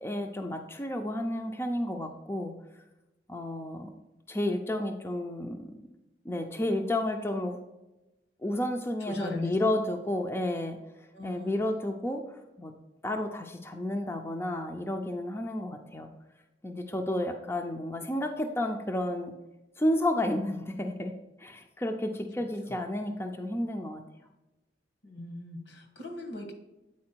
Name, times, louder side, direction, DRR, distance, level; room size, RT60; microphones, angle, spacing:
voice 1, 0.0-2.5 3.3-3.9 4.3-5.7 6.2-7.6 8.4-12.7 13.0-16.1 16.6-19.3 19.8-21.1 21.4-24.0, left 1 dB, 15° left, 4 dB, 0.4 m, -31 dB
voice 2, 9.0-9.5 11.1-11.6 17.4-17.5 22.7-22.8 25.0-26.5, left 2 dB, 80° left, 2 dB, 1.5 m, -39 dB
8.5 x 4.4 x 4.4 m, 1.0 s
head